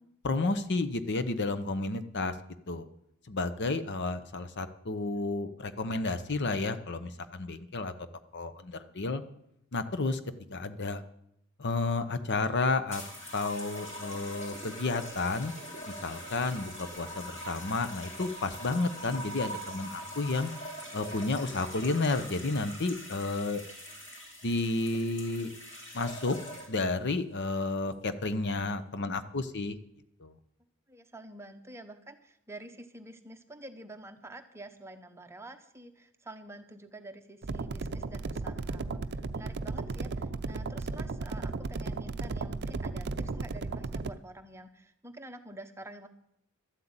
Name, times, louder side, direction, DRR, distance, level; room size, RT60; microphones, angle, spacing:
voice 1, 0.2-2.4 2.7-2.9 3.3-7.9 8.3-9.2 9.7-10.2 10.5-11.0 11.6-13.0 13.3-15.5 15.9-20.5 20.9-23.6 24.4-25.5 25.9-26.4 26.7-29.8 30.2-30.4, left 3 dB, 50° left, 11 dB, 0.8 m, -31 dB
sound 1, 12.9-26.9 27.8-28.1, equal, 30° left, 4.4 m, -43 dB
voice 2, 30.9-46.1, right 1 dB, 10° right, 7 dB, 0.9 m, -48 dB
sound 2, 37.4-44.1, right 3 dB, 50° right, 0.6 m, -35 dB
12.5 x 7.9 x 8.8 m, 0.78 s
head